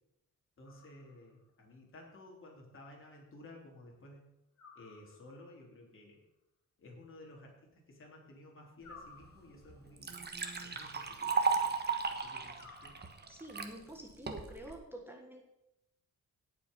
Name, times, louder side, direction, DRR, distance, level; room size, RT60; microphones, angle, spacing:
sound 1, 0.6-1.5 4.6-5.6 8.8-9.9 12.5-13.5, left 4 dB, 60° left, 3.5 m, -57 dB
voice 1, 0.6-4.3 4.8-6.2 6.8-10.2 10.6-13.0, left 1 dB, 40° left, -2 dB, 3.4 m, -55 dB
Liquid, 9.2-9.3 9.7-13.7 14.3-14.7, right 4 dB, 35° right, 1.3 m, -35 dB
voice 2, 13.3-15.5, right 1 dB, 5° right, 1 dB, 1.5 m, -48 dB
17.5 x 6.0 x 5.4 m, 0.85 s
wide cardioid pair, 130°, 31 cm